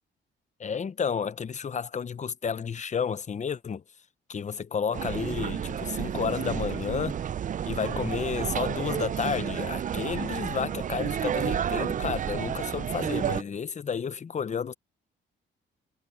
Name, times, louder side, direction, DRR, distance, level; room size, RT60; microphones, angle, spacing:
voice 1, 0.6-3.8 4.3-7.2 7.7-14.7, left 6 dB, 35° left, 0.9 m, -31 dB
sound 1, 4.9-13.4, right 9 dB, 40° right, 0.5 m, -31 dB
cardioid pair, 90°, 20 cm